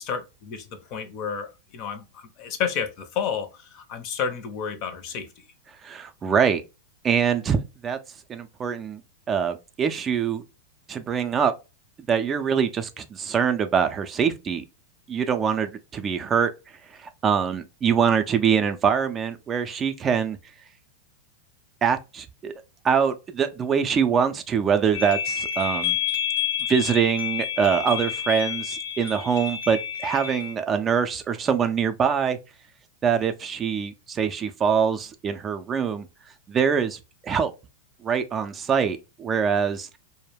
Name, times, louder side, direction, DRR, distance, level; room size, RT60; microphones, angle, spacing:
voice 1, 0.0-5.4, left 7 dB, 50° left, 0.6 m, -31 dB
voice 2, 5.8-6.6 7.0-8.0 8.3-9.0 9.3-10.4 10.9-11.5 12.1-14.6 15.1-16.5 16.9-20.4 21.8-22.5 22.8-26.0 26.7-32.4 33.0-36.1 36.5-37.5 38.0-39.9, right 7 dB, 25° right, 0.3 m, -24 dB
sound 1, 24.9-30.5, left 9 dB, 80° left, 1.0 m, -29 dB
2.2 x 2.0 x 3.2 m
hypercardioid pair, 110°, 0 cm